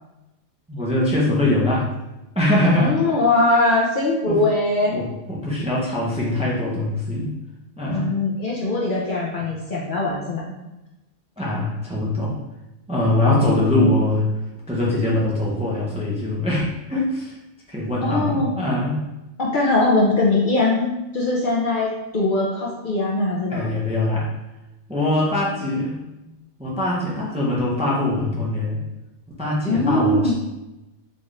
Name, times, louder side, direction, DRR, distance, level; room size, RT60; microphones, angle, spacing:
voice 1, 0.7-1.9 2.3-3.1 4.2-4.4 4.9-7.3 7.8-8.1 11.4-12.4 12.9-14.3 14.7-17.4 17.7-19.0 23.5-24.3 24.9-25.9 26.6-28.8 29.4-30.3, left 1 dB, 5° right, -5 dB, 0.6 m, -22 dB
voice 2, 2.8-4.9 7.9-10.5 13.8-14.0 18.0-18.5 19.4-23.7 29.7-30.3, left 2 dB, 50° left, -4 dB, 0.7 m, -21 dB
4.2 x 2.4 x 3.2 m, 0.97 s
omnidirectional pair, 1.2 m